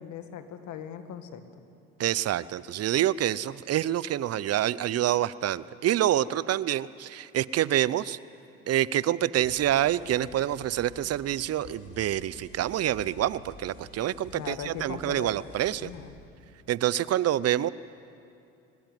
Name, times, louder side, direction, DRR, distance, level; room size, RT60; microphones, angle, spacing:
voice 1, 0.0-1.6 14.3-15.3 15.8-16.1, left 9 dB, 65° left, 8 dB, 2.1 m, -39 dB
voice 2, 2.0-8.2 8.7-15.9 16.7-17.7, right 12 dB, 50° right, 19 dB, 0.7 m, -27 dB
sound 1, 9.4-16.0, left 2 dB, 85° left, 4.2 m, -50 dB
22.5 x 19.5 x 9.2 m, 2.6 s
supercardioid pair, 75°, 31 cm